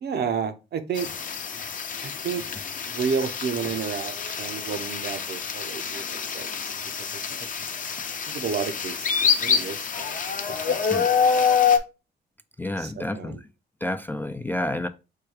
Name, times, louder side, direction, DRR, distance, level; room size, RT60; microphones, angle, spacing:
voice 1, 0.0-1.1 2.0-2.5 2.9-6.7 8.3-9.1 9.4-10.2 10.5-11.4 12.8-13.4, right 6 dB, 55° right, 0.7 m, -31 dB
sound 1, 1.0-11.8, left 6 dB, 40° left, 0.7 m, -26 dB
voice 2, 12.6-13.4 13.8-14.9, left 1 dB, 10° left, 0.3 m, -29 dB
4.5 x 2.3 x 4.7 m
cardioid pair, 90°, 20 cm